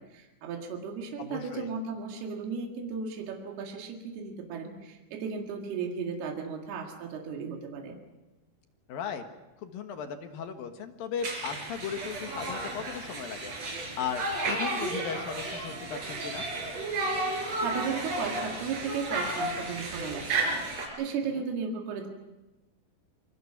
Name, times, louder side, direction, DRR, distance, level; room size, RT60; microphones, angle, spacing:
voice 1, 0.0-8.0 17.6-20.6 21.0-22.1, right 5 dB, 75° right, 2 dB, 3.9 m, -35 dB
voice 2, 1.2-1.7 8.9-9.3 9.6-16.5 21.2-21.4, left 7 dB, 65° left, 7 dB, 3.0 m, -37 dB
Conversation, 11.2-20.9, right 2 dB, 40° right, 5.5 m, -33 dB
27.0 x 23.5 x 5.9 m, 1.1 s
omnidirectional pair, 4.6 m